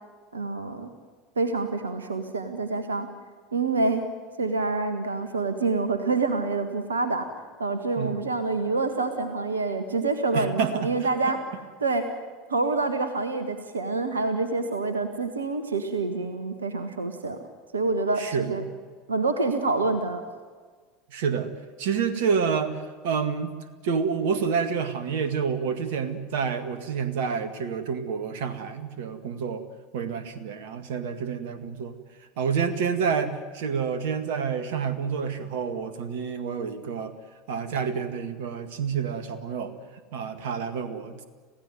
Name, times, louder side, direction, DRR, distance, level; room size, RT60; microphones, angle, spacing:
voice 1, 0.3-0.9 1.3-3.1 3.5-4.0 4.4-7.3 7.6-11.4 11.8-12.0 12.5-17.4 17.7-18.6 19.1-20.2, right 3 dB, 80° right, 9 dB, 1.7 m, -27 dB
voice 2, 10.3-10.9 18.2-18.7 21.1-21.5 21.8-22.8 23.0-23.5 23.8-29.6 29.9-31.9 32.4-37.1 37.5-39.7 40.1-41.2, right 6 dB, 60° right, 11 dB, 1.9 m, -28 dB
27.5 x 16.0 x 9.4 m, 1.5 s
figure-of-eight pair, 75°, 0 cm